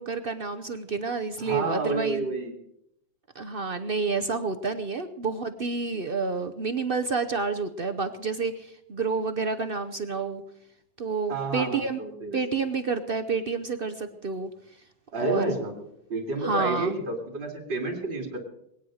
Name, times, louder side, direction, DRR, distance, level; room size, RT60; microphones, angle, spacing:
voice 1, 0.0-2.3 3.3-10.4 11.0-12.0 12.3-14.5 15.2-15.6 16.4-16.9, right 4 dB, 60° right, 8 dB, 0.5 m, -29 dB
voice 2, 1.4-2.5 11.3-12.4 15.1-15.7 16.1-18.4, right 3 dB, 75° right, 1 dB, 3.4 m, -30 dB
21.0 x 9.4 x 6.4 m, 0.78 s
omnidirectional pair, 2.0 m